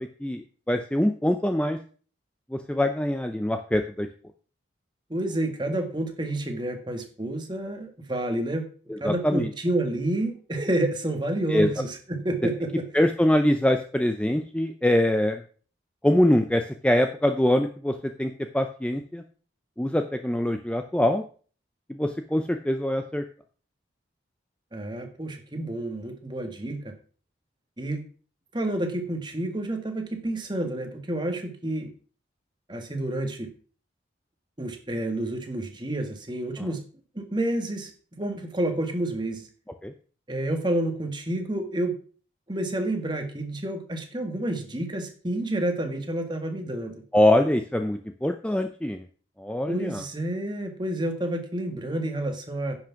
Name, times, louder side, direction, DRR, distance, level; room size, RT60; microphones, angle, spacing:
voice 1, 0.0-1.8 2.5-4.1 8.9-9.5 11.5-11.7 12.9-15.4 16.0-19.2 19.8-21.2 21.9-23.2 36.6-36.7 39.8-39.9 47.1-49.0 49.4-50.0, left 1 dB, 5° left, 6 dB, 0.5 m, -24 dB
voice 2, 5.1-8.6 9.0-12.9 24.7-26.9 27.8-28.0 28.5-31.9 32.7-33.5 34.6-36.8 37.2-39.5 40.3-41.9 42.5-46.9 49.7-52.8, right 1 dB, 25° right, 5 dB, 1.7 m, -29 dB
10.0 x 6.1 x 5.8 m, 0.42 s
head